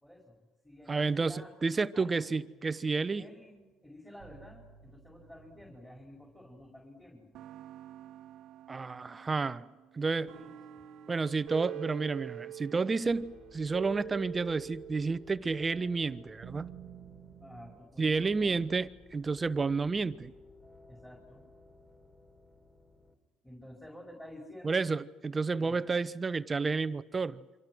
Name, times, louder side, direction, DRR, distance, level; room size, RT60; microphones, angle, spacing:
voice 1, 0.0-1.5 1.9-2.2 3.1-7.3 10.3-10.5 17.4-18.6 20.9-21.4 23.4-24.9 25.5-25.8, left 1 dB, 5° left, 5.1 m, -51 dB
voice 2, 0.9-3.2 8.7-9.7 9.9-10.3 11.1-16.7 18.0-20.3 24.6-27.4, right 4 dB, 25° right, 0.9 m, -31 dB
sound 1, 2.3-3.5 4.2-6.8 7.3-17.8, right 11 dB, 65° right, 1.2 m, -47 dB
sound 2, 13.0-23.1, left 3 dB, 30° left, 3.8 m, -56 dB
27.5 x 24.5 x 6.3 m
supercardioid pair, 85°, 0 cm